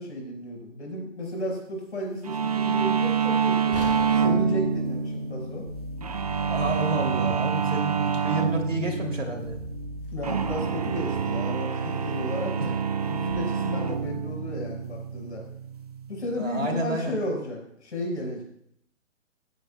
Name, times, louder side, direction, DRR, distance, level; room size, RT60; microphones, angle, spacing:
voice 1, 0.0-3.7 4.1-5.6 10.1-12.7 13.0-15.4 16.1-18.4, left 1 dB, 60° left, -1 dB, 4.9 m, -33 dB
sound 1, 2.3-16.7, right 6 dB, 30° right, 0.5 m, -27 dB
sound 2, 3.7-7.8 8.1-8.3 8.9-9.0, left 2 dB, 45° left, 1.1 m, -40 dB
sound 3, 5.7-7.6 9.5-11.5 13.3-13.4, right 1 dB, 15° right, 2.3 m, -40 dB
voice 2, 6.4-9.6 12.6-12.7 16.4-17.2, right 2 dB, 75° right, 2 dB, 2.8 m, -30 dB
17.5 x 9.3 x 2.2 m, 0.70 s
figure-of-eight pair, 130°, 38 cm